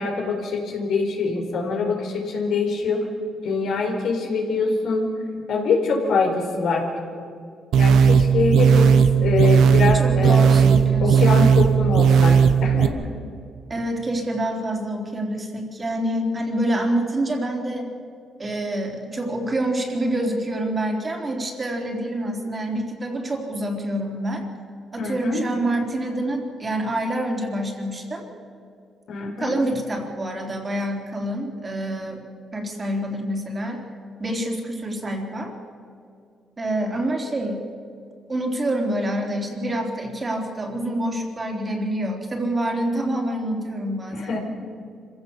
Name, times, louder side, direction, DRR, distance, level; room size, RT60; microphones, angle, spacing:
voice 1, 0.0-3.1 3.4-5.1 5.5-6.8 7.8-10.5 11.0-12.9 25.0-25.4 29.1-29.5 44.1-44.4, left 4 dB, 70° left, 1 dB, 4.4 m, -24 dB
sound 1, 7.7-12.9, right 7 dB, 75° right, 1.2 m, -16 dB
voice 2, 9.9-11.5 13.7-17.8 18.4-24.4 24.9-28.3 29.4-32.2 32.5-33.8 34.2-35.5 36.6-37.6 38.3-44.4, right 1 dB, 30° right, 1 dB, 3.9 m, -27 dB
25.5 x 16.0 x 7.2 m, 2.3 s
cardioid pair, 90°, 0 cm